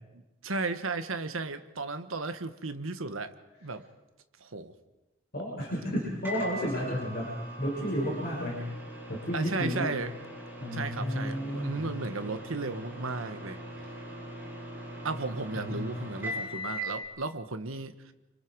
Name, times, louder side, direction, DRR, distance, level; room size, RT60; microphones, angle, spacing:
voice 1, 0.4-3.3 3.6-3.8 4.4-4.7 9.3-10.1 10.7-13.6 15.0-18.1, right 3 dB, 85° right, 10 dB, 1.4 m, -34 dB
voice 2, 5.3-8.6 9.1-10.0 10.6-12.0 15.5-16.0 16.3-16.4, equal, 50° left, -5 dB, 6.2 m, -32 dB
Microwave oven, 6.2-17.0, equal, 10° right, 5.7 m, -41 dB
29.0 x 25.5 x 4.8 m, 1.1 s
head